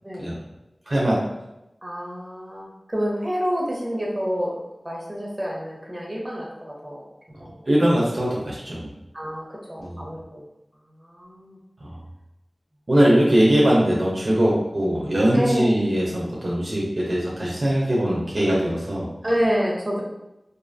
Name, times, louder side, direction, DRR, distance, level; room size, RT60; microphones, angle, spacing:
voice 1, 0.9-1.2 7.7-8.9 9.8-10.0 11.8-12.0 12.9-19.1, equal, 55° right, -5 dB, 0.6 m, -21 dB
voice 2, 1.8-4.5 4.8-7.1 7.4-7.6 9.1-10.4 11.0-11.6 15.3-15.8 19.2-20.0, equal, 20° right, -4 dB, 0.9 m, -28 dB
2.5 x 2.4 x 2.5 m, 0.91 s
wide cardioid pair, 50°, 0 cm